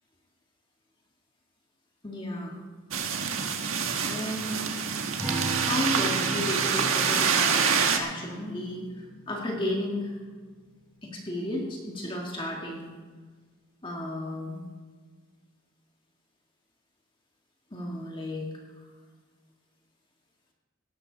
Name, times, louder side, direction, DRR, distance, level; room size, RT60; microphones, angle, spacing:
voice 1, 2.0-2.6 4.0-4.7 5.7-10.2 11.0-12.9 13.8-14.6 17.7-18.5, left 1 dB, 25° left, -1 dB, 2.1 m, -33 dB
sound 1, 2.9-8.0, right 6 dB, 80° right, 1.5 m, -26 dB
Acoustic guitar, 5.2-9.9, right 3 dB, 5° left, 3.9 m, -37 dB
17.5 x 13.0 x 4.1 m, 1.5 s
head